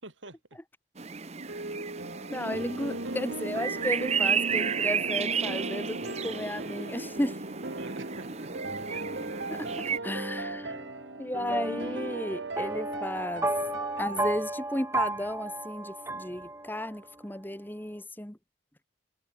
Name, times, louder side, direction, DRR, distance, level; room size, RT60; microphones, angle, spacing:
voice 1, 0.0-0.6 1.0-1.5 7.8-9.2 9.7-10.0, right 2 dB, 85° right, 6.5 m, -48 dB
sound 1, 1.0-10.0, right 6 dB, 35° right, 1.0 m, -33 dB
sound 2, 1.4-14.3, right 2 dB, 70° right, 3.0 m, -38 dB
voice 2, 2.3-7.4 9.5-10.8 11.2-13.5 14.0-18.4, left 1 dB, 10° left, 1.2 m, -34 dB
sound 3, 10.0-17.0, right 2 dB, 15° right, 3.1 m, -34 dB
head